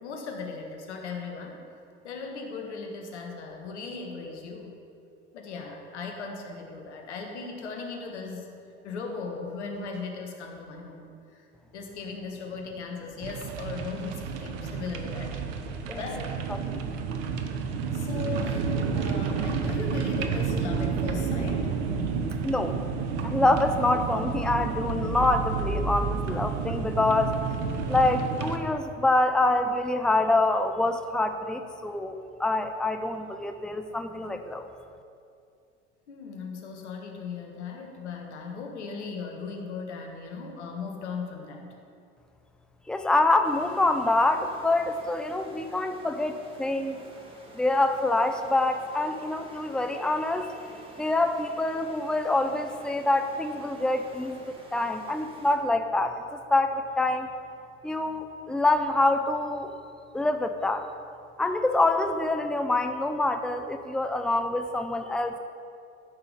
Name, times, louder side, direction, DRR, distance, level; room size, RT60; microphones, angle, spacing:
voice 1, 0.0-1.6 2.0-4.8 5.3-8.5 8.8-11.5 11.7-16.5 17.9-21.7 36.1-41.7, left 4 dB, 85° left, 2 dB, 1.6 m, -38 dB
sound 1, 13.2-28.6, right 5 dB, 70° right, 1.1 m, -30 dB
voice 2, 16.5-16.8 22.4-22.8 23.2-27.4 27.9-34.7 42.9-47.0 47.5-50.6 51.0-57.3 57.8-59.7 60.1-60.9 61.4-65.4, left 2 dB, ahead, 7 dB, 0.7 m, -26 dB
sound 2, 43.4-55.6, right 1 dB, 15° right, 2.5 m, -50 dB
13.0 x 6.1 x 5.2 m, 2.5 s
hypercardioid pair, 65°, 34 cm